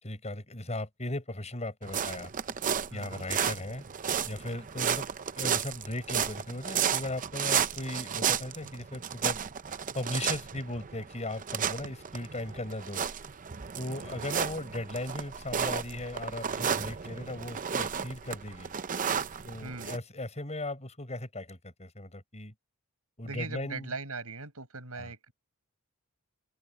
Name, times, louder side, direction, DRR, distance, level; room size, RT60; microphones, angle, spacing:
voice 1, 0.0-2.3 2.9-3.8 4.3-5.1 5.4-9.4 9.9-13.0 13.8-18.7 19.5-22.5 23.2-23.9 25.0-25.1, left 1 dB, 30° left, 7.0 m, -37 dB
sound 1, 1.8-20.0, right 7 dB, 40° right, 0.7 m, -33 dB
voice 2, 2.9-3.3 19.6-19.9 23.2-25.3, right 3 dB, 75° right, 7.8 m, -40 dB
open air
head